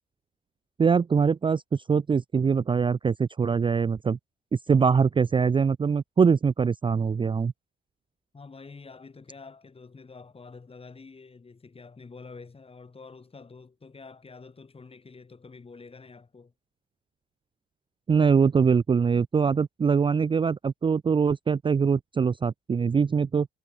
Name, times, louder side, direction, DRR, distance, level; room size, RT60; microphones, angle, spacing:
voice 1, 0.8-4.2 4.5-7.5 18.1-23.5, right 6 dB, 25° right, 0.4 m, -23 dB
voice 2, 8.3-16.5, left 4 dB, 30° left, 4.1 m, -47 dB
cardioid pair, 90°, 20 cm